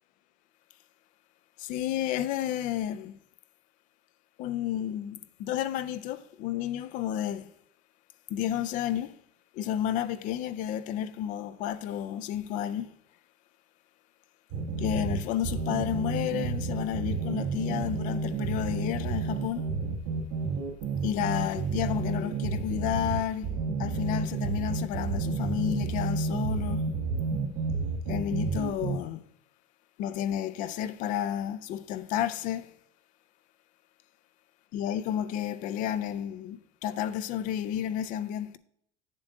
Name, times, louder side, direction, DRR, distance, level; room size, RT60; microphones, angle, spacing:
voice 1, 1.6-3.2 4.4-7.5 8.3-9.1 9.5-12.9 14.8-19.7 21.0-23.5 23.8-26.9 28.1-29.2 30.0-32.7 34.7-38.6, left 10 dB, 40° left, 0.4 m, -31 dB
sound 1, 14.5-29.0, right 4 dB, 70° right, 1.5 m, -31 dB
7.7 x 7.3 x 3.7 m
cardioid pair, 175°, 20 cm